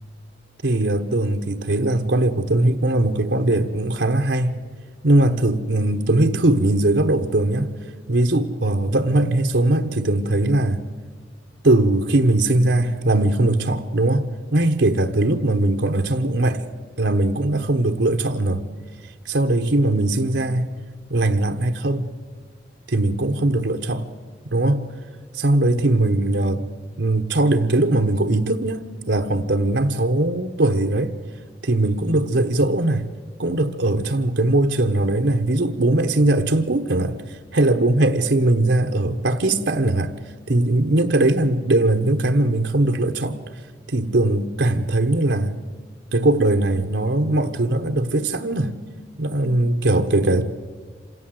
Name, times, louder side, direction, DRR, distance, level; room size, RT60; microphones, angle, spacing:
voice 1, 0.6-4.6 5.0-7.7 8.1-10.8 11.6-16.6 17.0-18.6 19.2-20.7 21.1-22.1 22.9-24.1 24.5-24.8 25.3-26.6 27.0-31.1 31.6-33.1 33.4-40.1 40.5-43.4 43.9-45.6 46.1-48.7 49.2-50.4, right 2 dB, 70° right, 1.2 m, -20 dB
27.0 x 17.0 x 7.8 m
head